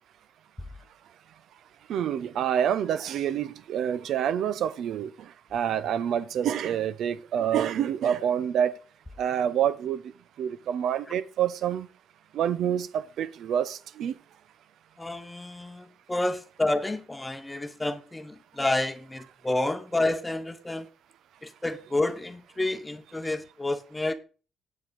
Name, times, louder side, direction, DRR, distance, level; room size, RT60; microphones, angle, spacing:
voice 1, 1.9-8.8 9.2-10.0 10.4-11.9 12.3-14.2, right 9 dB, 75° right, 0.7 m, -27 dB
voice 2, 15.0-20.9 21.4-24.1, left 2 dB, 15° left, 1.0 m, -29 dB
8.1 x 7.7 x 5.2 m
cardioid pair, 90°, 0 cm